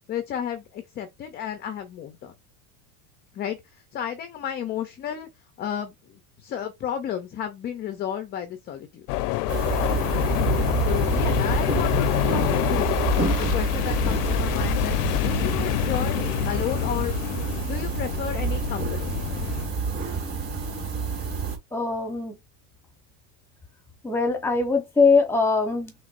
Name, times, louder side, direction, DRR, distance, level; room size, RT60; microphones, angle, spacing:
voice 1, 0.1-2.3 3.3-3.6 3.9-5.3 5.6-9.0 10.1-10.4 10.8-13.0 13.4-17.1 17.7-19.1, left 9 dB, 20° left, 0.5 m, -32 dB
sound 1, 9.1-19.7, left 15 dB, 90° left, 0.7 m, -26 dB
sound 2, 9.5-21.6, right 4 dB, 20° right, 2.5 m, -28 dB
sound 3, 10.4-15.4, right 6 dB, 65° right, 1.4 m, -35 dB
voice 2, 21.7-22.3 24.0-25.9, left 4 dB, 5° left, 0.9 m, -22 dB
5.1 x 3.6 x 2.5 m
supercardioid pair, 150°, 46 cm